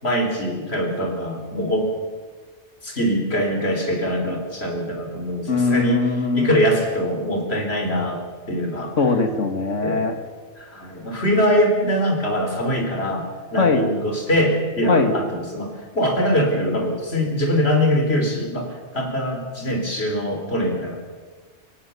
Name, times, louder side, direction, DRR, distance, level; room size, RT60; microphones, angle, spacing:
voice 1, 0.0-1.9 2.8-6.0 6.3-8.2 8.5-8.9 9.8-10.0 10.6-20.9, equal, 60° left, 3 dB, 4.3 m, -23 dB
voice 2, 5.5-6.6 9.0-10.1 13.6-13.9 14.9-15.1, left 4 dB, 90° left, 6 dB, 2.3 m, -20 dB
24.5 x 17.0 x 7.1 m, 1.4 s
omnidirectional pair, 1.2 m